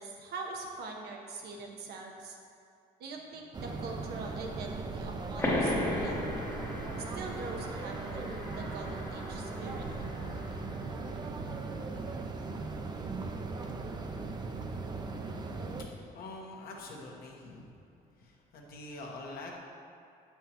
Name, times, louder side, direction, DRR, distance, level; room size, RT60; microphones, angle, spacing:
voice 1, 0.0-2.4 3.0-6.3 6.9-9.9, right 3 dB, 75° right, 1 dB, 0.9 m, -43 dB
sound 1, 3.5-15.8, right 3 dB, 25° right, 0.5 m, -38 dB
sound 2, 5.4-10.6, left 1 dB, 15° left, 0.8 m, -36 dB
voice 2, 16.1-17.7 18.2-19.6, left 2 dB, 60° left, -1 dB, 1.1 m, -45 dB
7.5 x 5.7 x 2.9 m, 2.4 s
cardioid pair, 110°, 17 cm